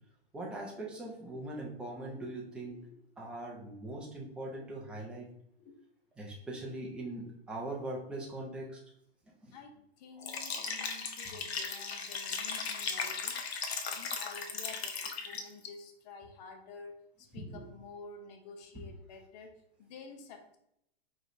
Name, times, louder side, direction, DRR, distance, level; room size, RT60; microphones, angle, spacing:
voice 1, 0.3-2.8 3.2-5.3 6.2-8.8 9.4-9.5 17.3-17.6, right 2 dB, 5° right, -3 dB, 0.4 m, -41 dB
voice 2, 2.7-3.0 5.6-5.8 9.5-13.4 13.9-20.6, left 4 dB, 40° left, 4 dB, 0.7 m, -50 dB
Liquid, 10.2-15.7, left 5 dB, 85° left, 0.8 m, -37 dB
4.7 x 3.2 x 2.6 m, 0.74 s
hypercardioid pair, 145°, 31 cm